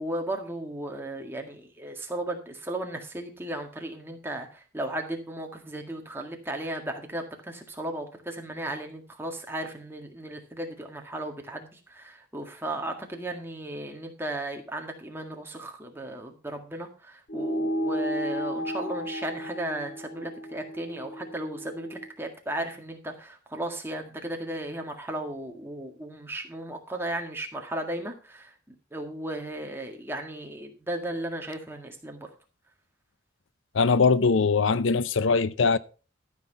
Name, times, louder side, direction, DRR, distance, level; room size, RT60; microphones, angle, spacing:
voice 1, 0.0-28.5 28.9-32.3, right 1 dB, 10° right, 1.8 m, -35 dB
sound 1, 17.3-22.1, equal, 55° left, 1.2 m, -33 dB
voice 2, 33.7-35.8, left 4 dB, 80° left, 0.6 m, -21 dB
13.0 x 6.0 x 5.6 m
head